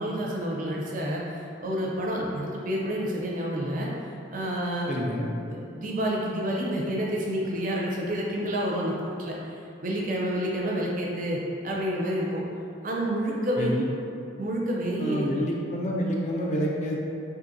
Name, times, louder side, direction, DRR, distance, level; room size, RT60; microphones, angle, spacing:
voice 1, 0.0-3.9 4.3-4.9 5.4-9.3 9.8-12.4 12.8-13.7 14.4-15.3, equal, 45° right, -3 dB, 0.4 m, -29 dB
voice 2, 4.9-5.3 13.6-13.8 15.0-17.1, equal, 40° left, -2 dB, 0.3 m, -28 dB
3.8 x 2.6 x 2.6 m, 2.6 s
head